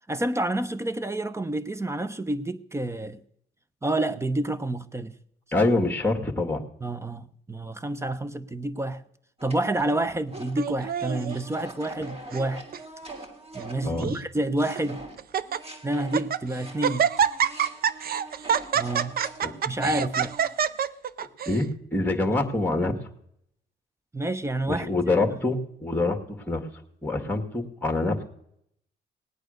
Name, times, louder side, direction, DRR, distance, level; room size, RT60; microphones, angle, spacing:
voice 1, 0.1-3.2 3.8-5.1 5.6-5.7 6.8-9.0 9.4-12.7 13.5-15.0 15.8-17.1 18.7-19.1 19.6-20.4 24.1-24.9, right 1 dB, 15° right, 0.9 m, -29 dB
voice 2, 5.5-6.6 13.8-14.1 19.4-19.5 19.8-20.0 21.5-22.9 24.7-26.2 26.5-26.6 27.0-28.2, left 2 dB, 10° left, 2.0 m, -25 dB
sound 1, 9.4-14.3 14.6-20.9, right 2 dB, 30° right, 2.8 m, -43 dB
Laughter, 10.6-11.4 12.1-12.5 12.7-12.8 13.6-14.2 14.7-14.8 15.2-15.6 16.0-16.4 16.8-21.6, right 8 dB, 50° right, 0.6 m, -26 dB
18.5 x 8.9 x 6.5 m
cardioid pair, 90°, 20 cm